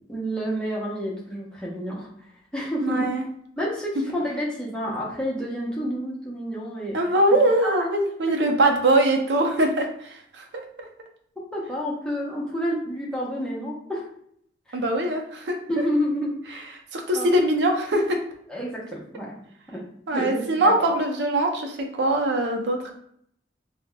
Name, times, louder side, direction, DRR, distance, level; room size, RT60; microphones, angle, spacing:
voice 1, 0.1-2.1 2.5-3.1 3.6-7.0 7.3-7.7 8.3-8.4 11.5-14.1 14.7-14.8 15.7-16.6 17.1-17.3 18.5-19.3 19.7-19.8 20.1-20.9, equal, 5° left, -5 dB, 0.7 m, -29 dB
voice 2, 2.8-3.2 6.9-10.6 14.7-15.6 16.9-18.2 20.1-23.0, right 1 dB, 80° right, 3 dB, 0.5 m, -22 dB
4.0 x 2.1 x 2.2 m, 0.68 s
head